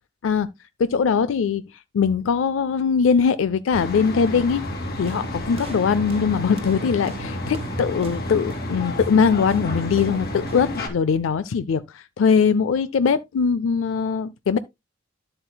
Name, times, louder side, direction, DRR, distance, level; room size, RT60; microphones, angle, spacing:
voice 1, 0.8-1.6 1.9-4.7 5.0-14.6, left 6 dB, 70° left, 0.4 m, -21 dB
sound 1, 3.7-10.9, left 1 dB, 55° left, 2.5 m, -31 dB
sound 2, 5.1-10.9, right 3 dB, 30° right, 1.2 m, -38 dB
11.0 x 7.9 x 2.2 m
head